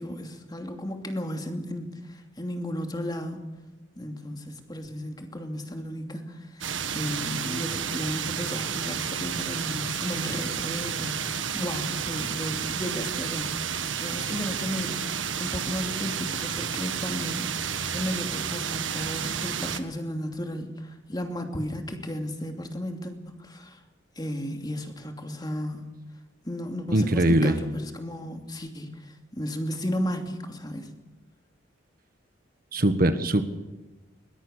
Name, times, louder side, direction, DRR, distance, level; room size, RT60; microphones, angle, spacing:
voice 1, 0.0-3.5 4.0-6.6 6.9-23.8 24.2-25.9 26.4-30.9, equal, 20° left, 4 dB, 2.8 m, -34 dB
sound 1, 6.6-19.8, right 7 dB, 85° right, 1.6 m, -31 dB
voice 2, 26.9-27.6 32.7-33.4, right 1 dB, 50° right, 9 dB, 1.5 m, -21 dB
21.5 x 20.5 x 6.7 m, 1.1 s
head